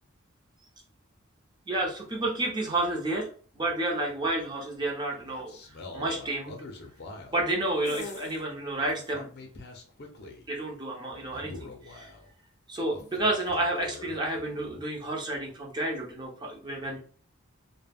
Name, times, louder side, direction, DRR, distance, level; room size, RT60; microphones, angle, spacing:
voice 1, 1.7-3.3 3.5-5.6 5.9-6.6 7.3-9.3 10.5-12.1 12.7-17.0, right 2 dB, 20° right, -1 dB, 0.6 m, -30 dB
sound 1, 5.1-7.5 7.8-8.4 8.8-10.5 11.1-12.3 12.9-14.8, left 2 dB, 55° left, 0.5 m, -44 dB
2.2 x 2.0 x 3.4 m, 0.43 s
head